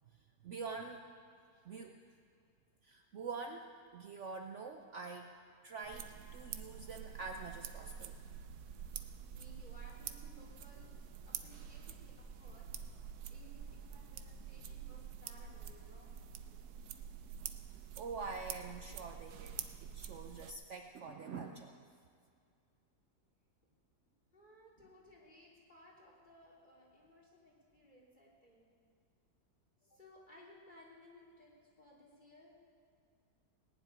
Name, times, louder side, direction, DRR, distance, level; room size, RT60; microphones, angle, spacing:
voice 1, 0.1-1.1 1.6-2.2 2.8-5.3 5.6-8.2 17.7-21.8, right 4 dB, 55° right, 4 dB, 0.9 m, -46 dB
sound 1, 5.8-20.5, right 8 dB, 80° right, 1.3 m, -47 dB
voice 2, 9.3-10.9 11.3-13.0 13.3-16.1 24.3-28.7 29.8-31.5 31.8-32.5, left 1 dB, 30° left, -4 dB, 3.6 m, -60 dB
19.0 x 7.5 x 9.7 m, 2.2 s
omnidirectional pair, 1.7 m